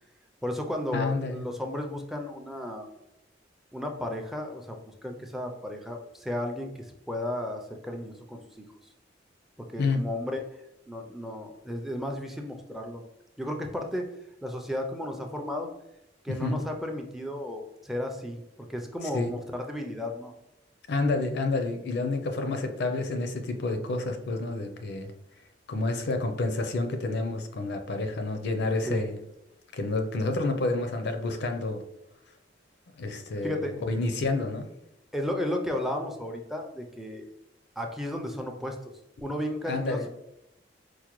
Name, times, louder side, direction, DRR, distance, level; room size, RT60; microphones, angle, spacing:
voice 1, 0.4-2.9 3.7-8.6 9.7-10.5 10.9-13.0 13.4-14.1 14.4-15.7 16.2-18.4 18.7-20.3 28.9-29.0 33.4-33.7 35.1-37.3 37.8-38.8 39.2-40.1, left 1 dB, ahead, 3 dB, 0.4 m, -34 dB
voice 2, 0.9-1.4 9.8-10.0 16.3-16.6 19.1-19.3 20.9-25.1 25.7-29.2 29.7-31.8 33.0-34.7 39.6-40.1, left 2 dB, 65° left, 6 dB, 0.5 m, -29 dB
4.6 x 2.1 x 2.9 m, 0.88 s
head